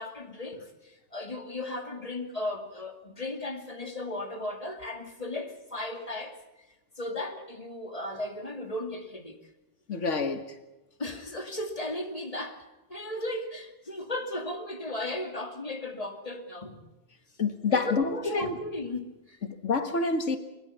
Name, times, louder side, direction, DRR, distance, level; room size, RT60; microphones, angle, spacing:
voice 1, 0.0-6.4 7.0-9.5 11.0-16.8 17.7-19.4, left 1 dB, 30° left, 2.6 m, -36 dB
voice 2, 9.9-10.4 17.4-18.6 19.5-20.4, left 4 dB, 90° left, 2.0 m, -27 dB
24.0 x 22.0 x 5.7 m
omnidirectional pair, 1.2 m